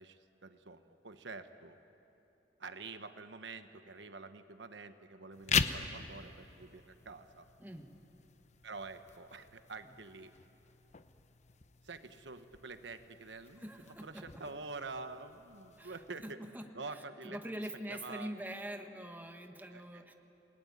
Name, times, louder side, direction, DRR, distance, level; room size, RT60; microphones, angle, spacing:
voice 1, 0.0-1.8 2.6-7.5 8.6-10.3 11.8-13.6 14.0-16.5 16.7-17.4 17.9-18.3 19.7-20.0, right 3 dB, 75° right, 9 dB, 1.1 m, -47 dB
sound 1, 5.3-16.3, left 6 dB, 40° left, 0.9 m, -41 dB
voice 2, 7.6-7.9 13.6-14.4 15.8-20.1, right 1 dB, 10° right, 5 dB, 1.5 m, -45 dB
28.5 x 20.0 x 9.7 m, 3.0 s
head